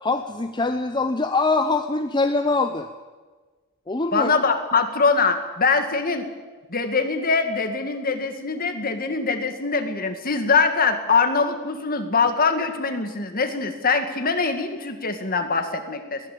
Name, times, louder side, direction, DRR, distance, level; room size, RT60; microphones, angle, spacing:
voice 1, 0.0-2.9 3.9-4.3, left 3 dB, 20° left, 7 dB, 0.8 m, -23 dB
voice 2, 4.1-6.3 6.7-16.2, left 4 dB, 40° left, 6 dB, 2.2 m, -23 dB
21.5 x 16.0 x 8.6 m, 1.4 s
head